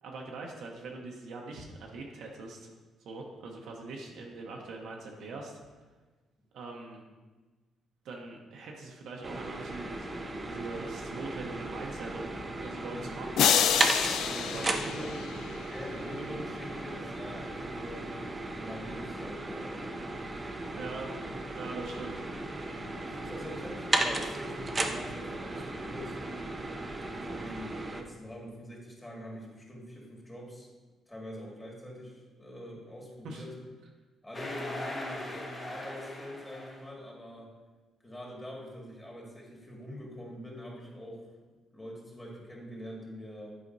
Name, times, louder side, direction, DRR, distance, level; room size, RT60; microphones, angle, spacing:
voice 1, 0.0-2.7 3.0-5.6 6.5-7.0 8.0-13.5 14.3-15.1 20.7-21.2 21.5-22.2 23.5-23.6 33.2-33.5, right 3 dB, 75° right, 0 dB, 0.8 m, -42 dB
sound 1, 9.2-28.0, right 2 dB, 25° right, 0.6 m, -35 dB
sound 2, 13.4-15.7, left 8 dB, 80° left, 0.3 m, -27 dB
voice 2, 14.4-15.2 15.7-18.1 18.5-19.7 23.0-26.2 27.1-30.7 31.1-33.5 34.2-37.5 38.0-41.2 41.7-43.5, equal, 15° left, -3 dB, 1.9 m, -44 dB
sound 3, 34.3-36.9, left 1 dB, 30° left, 1.3 m, -39 dB
8.4 x 4.9 x 2.6 m, 1.3 s
cardioid pair, 90°, 0 cm